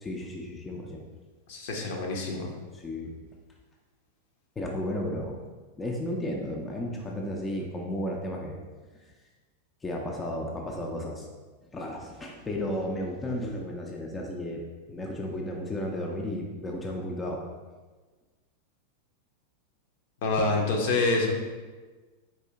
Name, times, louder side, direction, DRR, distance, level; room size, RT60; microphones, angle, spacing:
voice 1, 0.0-1.0 2.7-3.1 4.6-5.4 5.7-8.6 9.8-11.3 11.7-17.4 20.4-20.5, left 1 dB, 15° left, 0 dB, 0.5 m, -33 dB
voice 2, 1.5-2.5 20.2-21.3, left 3 dB, 55° left, 1 dB, 0.7 m, -26 dB
4.3 x 2.7 x 3.6 m, 1.3 s
figure-of-eight pair, 90°, 0 cm